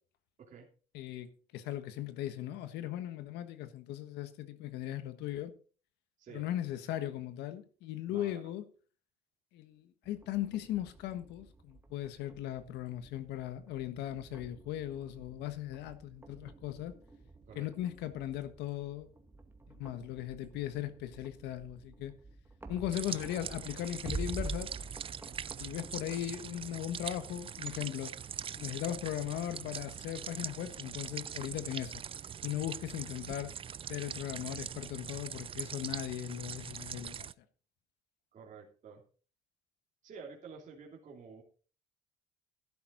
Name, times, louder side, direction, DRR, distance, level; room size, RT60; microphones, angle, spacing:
voice 1, 0.9-5.5 6.3-8.6 9.5-17.0 17.5-19.1 19.7-22.1 22.7-24.7 25.6-28.1 28.5-32.0 32.4-33.5 33.9-37.3, left 12 dB, 85° left, 1.4 m, -38 dB
voice 2, 6.2-6.5 8.1-8.5 17.5-17.7 38.3-39.0 40.0-41.4, right 5 dB, 50° right, 2.9 m, -50 dB
sound 1, 10.0-26.2, right 2 dB, 15° right, 2.0 m, -48 dB
sound 2, 22.9-37.3, right 8 dB, 30° right, 0.4 m, -42 dB
12.0 x 11.0 x 4.0 m
cardioid pair, 110°, 17 cm